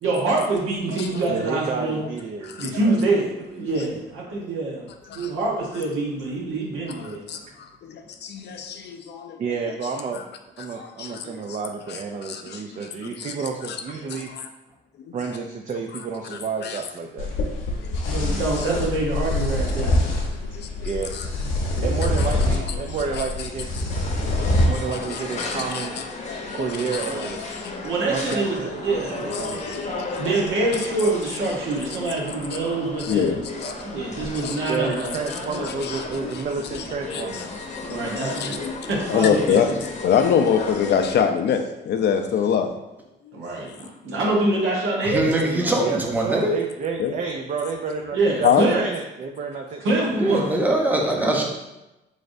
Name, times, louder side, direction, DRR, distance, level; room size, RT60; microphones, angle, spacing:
voice 1, 0.0-2.0 2.6-4.8 5.1-7.2 18.0-20.0 27.0-27.2 27.8-29.7 30.2-33.4 33.8-35.1 37.4-37.5 37.8-38.6 38.9-39.9 43.3-45.8 48.1-48.8 49.8-50.4 51.4-51.5, right 2 dB, 80° right, -3 dB, 1.1 m, -25 dB
voice 2, 1.2-3.0 3.3-3.6 9.4-10.2 10.6-14.3 15.1-17.3 20.8-21.1 21.8-23.7 24.6-25.9 26.5-27.4 28.1-29.6 34.7-37.4 45.8-50.4, right 5 dB, 40° right, 2 dB, 0.4 m, -30 dB
voice 3, 6.9-7.4 7.9-9.4 10.6-11.3 12.2-12.6 13.0-13.3 14.0-14.2 16.6-16.8 18.0-18.4 20.5-21.2 22.6-22.7 23.1-23.2 24.3-25.1 25.5-25.9 26.3-27.8 29.5-30.3 33.0-33.7 34.3-34.9 35.5-36.1 37.1-37.4 37.7-39.7 40.0-42.7 47.0-47.1 48.4-48.6, left 7 dB, 60° left, 5 dB, 0.4 m, -25 dB
sound 1, 17.2-24.7, left 1 dB, 90° left, 0.7 m, -25 dB
sound 2, 23.9-41.2, left 2 dB, 35° left, 0.8 m, -34 dB
voice 4, 45.0-46.5 50.1-51.4, right 1 dB, 10° right, 0 dB, 0.7 m, -22 dB
3.9 x 3.2 x 2.6 m, 0.98 s
cardioid pair, 90°, 20 cm